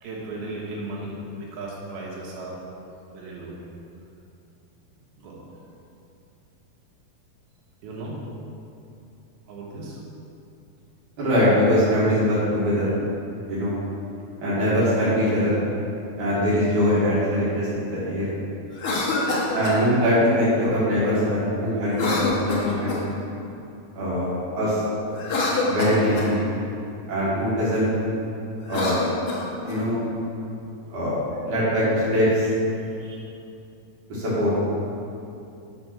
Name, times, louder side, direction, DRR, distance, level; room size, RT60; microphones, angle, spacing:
voice 1, 0.0-2.6 3.1-3.6 5.2-5.5 7.8-8.2 9.5-10.0 30.8-30.9 33.0-33.3, right 2 dB, 85° right, -4 dB, 3.4 m, -36 dB
voice 2, 11.2-12.9 13.5-13.7 14.4-15.6 16.2-18.2 19.5-23.0 23.9-24.3 24.5-24.8 25.6-26.4 27.1-27.9 28.7-29.0 29.6-30.0 30.9-32.5 34.1-34.6, equal, 60° right, -11 dB, 3.4 m, -22 dB
Cough, 18.7-19.8 21.9-23.2 25.1-26.3 28.6-29.8, left 2 dB, 65° left, 1.3 m, -26 dB
9.8 x 4.5 x 6.0 m, 2.6 s
omnidirectional pair, 4.2 m